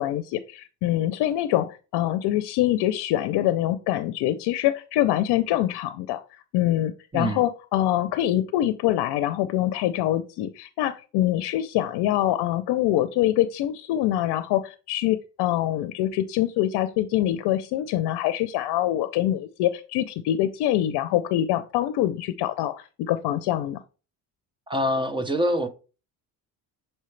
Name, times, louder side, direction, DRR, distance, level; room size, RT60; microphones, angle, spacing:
voice 1, 0.0-6.2 6.5-23.8, left 13 dB, 80° left, 0.6 m, -24 dB
voice 2, 24.7-25.7, equal, 15° right, 0.5 m, -25 dB
6.6 x 4.4 x 3.2 m
cardioid pair, 140°, 39 cm